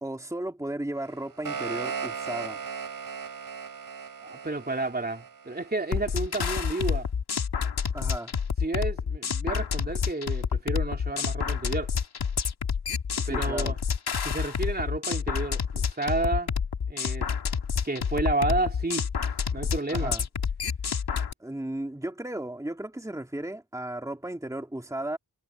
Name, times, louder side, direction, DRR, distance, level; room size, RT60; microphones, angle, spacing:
voice 1, 0.0-2.6 7.9-8.3 13.2-13.7 19.9-20.2 21.4-25.2, right 1 dB, 10° right, 2.5 m, -35 dB
sound 1, 1.0-6.1, right 6 dB, 60° right, 5.2 m, -37 dB
voice 2, 4.2-7.1 8.6-11.9 13.3-13.8 14.2-16.5 16.9-17.3 17.8-19.1 19.5-20.1, right 2 dB, 25° right, 3.0 m, -31 dB
sound 2, 5.9-21.3, left 6 dB, 85° left, 2.1 m, -28 dB
wide cardioid pair, 115°, 38 cm